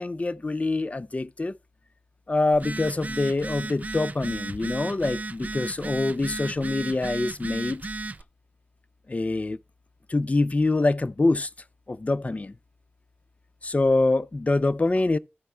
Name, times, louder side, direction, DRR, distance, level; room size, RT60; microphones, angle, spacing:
voice 1, 0.0-1.6 2.3-7.8 9.1-9.6 10.1-11.5 11.9-12.5 13.6-15.2, left 2 dB, 35° left, 0.5 m, -25 dB
Telephone, 2.5-8.2, right 3 dB, 45° right, 0.5 m, -35 dB
14.5 x 5.1 x 3.3 m
wide cardioid pair, 70°, 4 cm